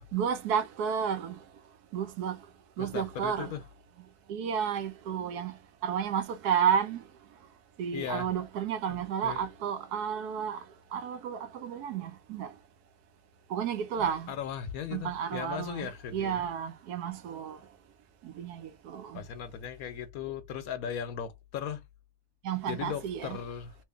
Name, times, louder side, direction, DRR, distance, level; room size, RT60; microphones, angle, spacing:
voice 1, 0.1-1.3 1.9-2.4 2.8-3.5 4.3-5.5 5.8-7.0 7.8-10.6 10.9-12.5 13.5-14.3 14.9-15.9 16.1-17.6 18.2-19.2 22.4-23.4, right 8 dB, 75° right, 1.2 m, -31 dB
voice 2, 2.8-3.6 7.9-8.3 8.9-9.4 14.0-16.5 19.1-21.8 22.7-23.8, left 8 dB, 70° left, 1.0 m, -37 dB
3.0 x 2.6 x 3.5 m
omnidirectional pair, 1.7 m